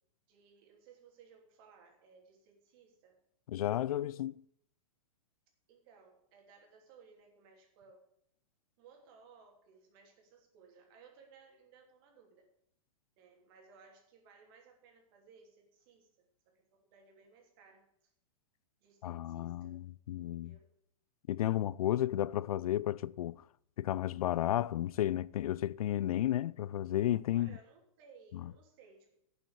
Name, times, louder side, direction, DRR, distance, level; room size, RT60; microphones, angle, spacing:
voice 1, 0.3-3.2 5.7-8.0 8.8-12.5 13.2-18.1 18.8-19.8 20.3-20.7 27.3-29.2, right 5 dB, 40° right, 3.0 m, -61 dB
voice 2, 3.5-4.3 19.0-20.6 21.3-23.4 23.8-27.6 28.3-28.5, left 12 dB, 75° left, 0.4 m, -33 dB
8.5 x 8.0 x 8.0 m
hypercardioid pair, 160°, 19 cm